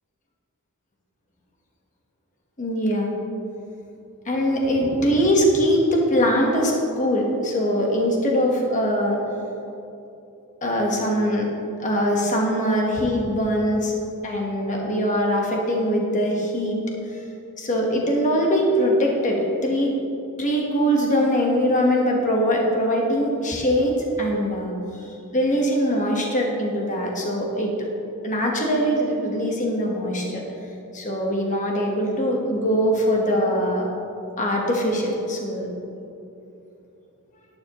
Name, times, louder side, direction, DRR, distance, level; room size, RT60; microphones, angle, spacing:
voice 1, 2.6-3.1 4.3-9.2 10.6-11.5 11.8-13.9 14.2-16.8 17.6-20.0 20.4-23.9 24.2-24.8 25.3-27.9 28.2-30.4 30.9-33.9 34.4-35.7, equal, 35° left, -1 dB, 1.4 m, -22 dB
12.0 x 9.4 x 3.1 m, 2.8 s
head